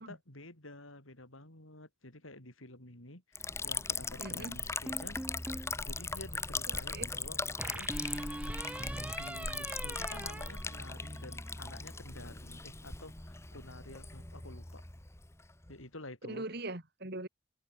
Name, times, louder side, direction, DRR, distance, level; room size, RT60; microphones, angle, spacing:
voice 1, 0.0-5.2 5.5-7.9 8.7-14.8 15.7-16.4, left 2 dB, 85° left, 7.1 m, -51 dB
Liquid, 3.4-15.8, left 3 dB, 15° left, 1.1 m, -39 dB
voice 2, 4.2-4.6 6.7-7.1 16.3-17.3, right 2 dB, 50° right, 3.0 m, -41 dB
sound 1, 4.9-5.8 7.6-11.4, right 1 dB, 5° right, 0.7 m, -42 dB
head